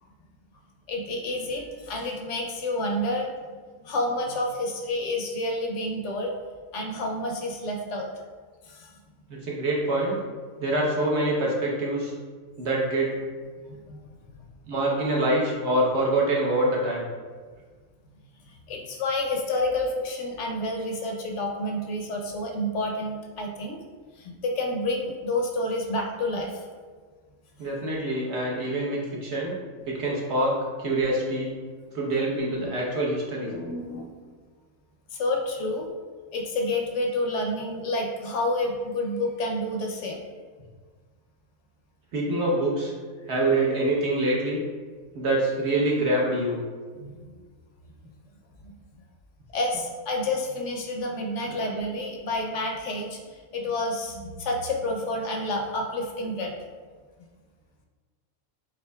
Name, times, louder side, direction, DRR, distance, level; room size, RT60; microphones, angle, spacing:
voice 1, 0.9-3.3 3.8-6.3 6.7-8.1 8.6-8.9 10.6-10.7 13.6-14.1 14.3-14.4 18.5-23.8 24.2-26.7 33.5-34.1 35.1-35.9 36.3-40.3 47.0-47.2 48.6-48.7 49.5-56.5, left 1 dB, 70° left, 0 dB, 0.9 m, -29 dB
voice 2, 9.3-10.2 10.6-12.1 12.6-13.1 14.6-17.1 27.6-29.5 29.9-31.5 31.9-33.5 42.1-42.9 43.3-44.6 45.1-46.6 51.4-51.6, right 1 dB, 60° right, -3 dB, 1.1 m, -25 dB
7.3 x 2.6 x 2.2 m, 1.5 s
omnidirectional pair, 1.4 m